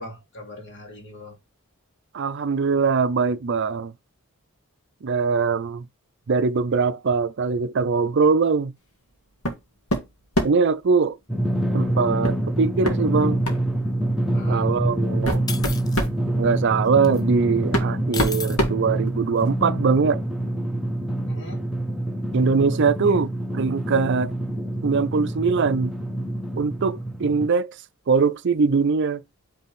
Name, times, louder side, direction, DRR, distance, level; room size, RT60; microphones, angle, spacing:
voice 1, 0.0-1.4 14.3-14.8 21.3-21.7 23.1-23.2, left 1 dB, 55° left, 2.4 m, -40 dB
voice 2, 2.1-3.9 5.0-5.9 6.3-8.7 10.4-11.2 11.7-13.4 14.5-15.4 16.4-20.2 22.3-24.3 24.8-25.9 26.6-27.8 28.1-29.2, right 5 dB, 55° right, 0.5 m, -22 dB
sound 1, 9.4-9.6 9.9-10.7 12.2-12.4 12.8-13.0 13.4-13.6 14.5-14.6 15.0-16.2 17.2-17.3 17.7-19.5, equal, 80° left, 1.8 m, -26 dB
Drum, 11.3-27.5, right 1 dB, ahead, 0.9 m, -26 dB
sound 2, 15.5-16.0 17.0-17.2 18.1-18.6, left 5 dB, 15° left, 0.5 m, -33 dB
5.7 x 3.4 x 4.8 m
head